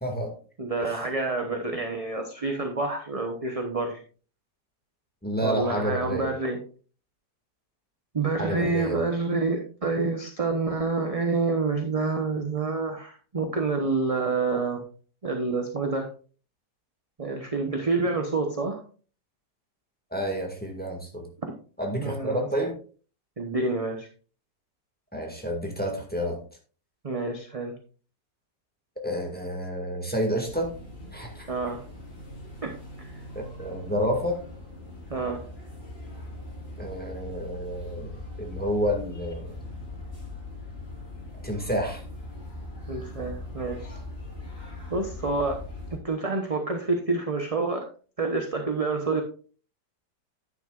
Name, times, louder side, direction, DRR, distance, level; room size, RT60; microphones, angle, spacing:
voice 1, 0.0-0.3 0.8-1.0 5.2-6.3 8.4-9.0 20.1-21.3 21.8-22.8 25.1-26.4 29.0-30.7 31.1-31.5 33.3-34.4 36.8-39.6 41.4-42.0, equal, 5° left, 1 dB, 1.9 m, -29 dB
voice 2, 0.6-4.0 5.4-6.6 8.1-14.8 15.2-16.1 17.2-18.8 22.0-22.5 23.4-24.1 27.0-27.7 31.5-31.8 32.6-32.7 33.0-33.2 35.1-35.4 42.9-44.0 44.9-45.6 45.9-47.8 48.2-49.2, right 3 dB, 25° right, 4 dB, 0.8 m, -28 dB
sound 1, 30.4-46.0, left 2 dB, 35° left, 4.6 m, -41 dB
10.5 x 9.5 x 2.4 m, 0.40 s
omnidirectional pair, 1.8 m